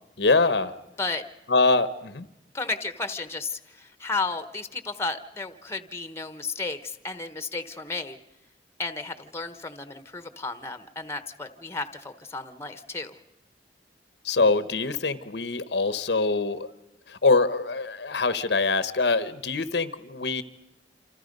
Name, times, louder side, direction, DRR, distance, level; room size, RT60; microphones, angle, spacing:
voice 1, 0.2-0.7 1.5-2.3 14.2-16.7 17.1-20.4, left 3 dB, 70° left, 13 dB, 1.0 m, -24 dB
voice 2, 2.5-8.2 8.8-13.2, left 3 dB, 15° left, 11 dB, 1.1 m, -33 dB
28.0 x 27.0 x 5.4 m, 0.86 s
head